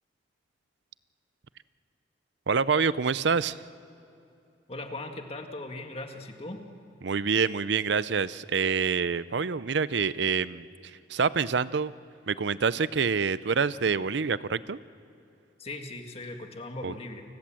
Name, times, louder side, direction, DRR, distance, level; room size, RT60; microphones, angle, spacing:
voice 1, 2.5-3.6 7.0-10.7 11.1-11.9 12.3-14.8 16.8-16.9, right 5 dB, 70° right, 17 dB, 0.6 m, -26 dB
voice 2, 4.7-6.6 15.6-17.2, left 2 dB, 30° left, 4 dB, 1.9 m, -39 dB
29.5 x 20.5 x 7.6 m, 2.7 s
head